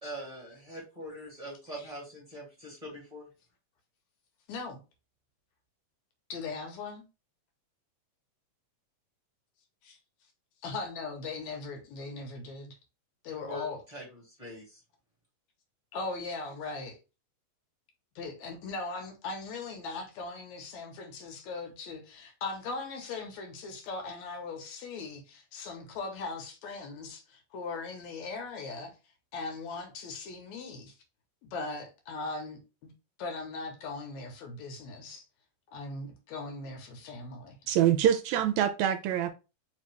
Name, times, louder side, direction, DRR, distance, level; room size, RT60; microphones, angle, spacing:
voice 1, 0.0-3.3 13.4-14.8, equal, 15° right, 1.4 m, -43 dB
voice 2, 4.5-4.8 6.3-7.1 9.8-10.0 10.6-12.8 13.2-13.8 15.9-17.0 18.2-28.9 29.3-30.9 31.4-32.9 33.2-35.2 35.7-37.6, left 3 dB, 75° left, 2.3 m, -39 dB
voice 3, 37.7-39.3, right 10 dB, 80° right, 1.8 m, -25 dB
4.7 x 2.9 x 3.2 m
omnidirectional pair, 3.3 m